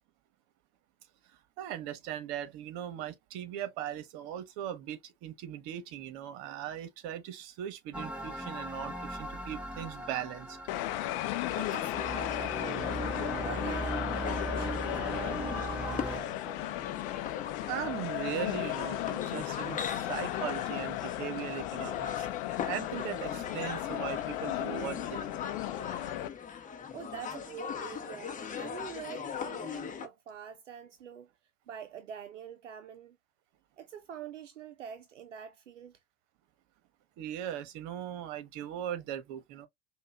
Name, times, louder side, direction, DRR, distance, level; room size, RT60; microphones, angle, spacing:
voice 1, 1.6-10.6 17.7-25.4 37.2-39.7, right 11 dB, 50° right, 1.1 m, -39 dB
sound 1, 7.9-16.2, right 1 dB, 5° right, 1.1 m, -38 dB
sound 2, 10.7-26.3, left 15 dB, 50° left, 0.6 m, -35 dB
sound 3, 11.5-30.1, left 7 dB, 20° left, 0.9 m, -40 dB
voice 2, 11.5-13.0 13.4-16.7 26.9-31.3 31.7-33.2 33.8-36.0, right 8 dB, 80° right, 0.6 m, -46 dB
5.3 x 2.4 x 2.4 m
figure-of-eight pair, 75°, 36 cm